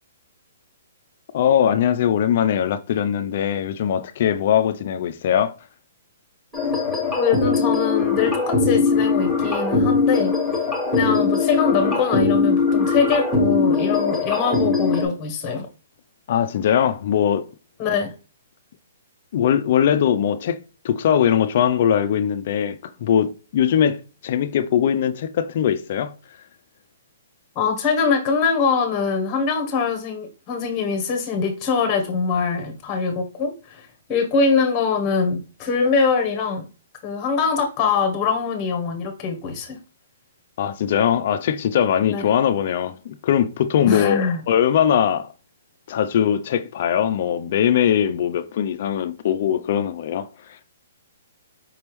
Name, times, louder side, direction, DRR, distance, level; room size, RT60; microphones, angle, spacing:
voice 1, 1.3-5.5 16.3-17.5 19.3-20.6 20.8-26.1 40.6-45.3 45.9-50.6, left 9 dB, 35° left, 0.3 m, -21 dB
sound 1, 6.5-15.1, left 4 dB, ahead, 1.3 m, -21 dB
voice 2, 7.1-10.3 10.9-15.7 17.8-18.1 27.5-33.8 34.1-36.7 37.0-39.8 42.1-42.2 43.9-44.4, left 5 dB, 15° left, 0.9 m, -23 dB
5.1 x 3.4 x 3.0 m
hypercardioid pair, 175°, 0 cm